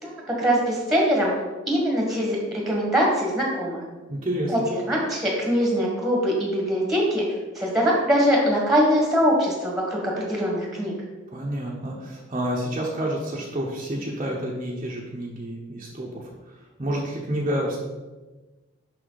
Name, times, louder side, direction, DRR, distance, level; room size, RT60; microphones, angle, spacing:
voice 1, 0.0-1.3 1.7-3.8 4.5-7.2 7.6-10.9, equal, ahead, -2 dB, 1.7 m, -22 dB
voice 2, 4.1-4.5 11.3-17.8, right 1 dB, 30° right, -4 dB, 0.9 m, -29 dB
6.5 x 5.7 x 4.1 m, 1.2 s
head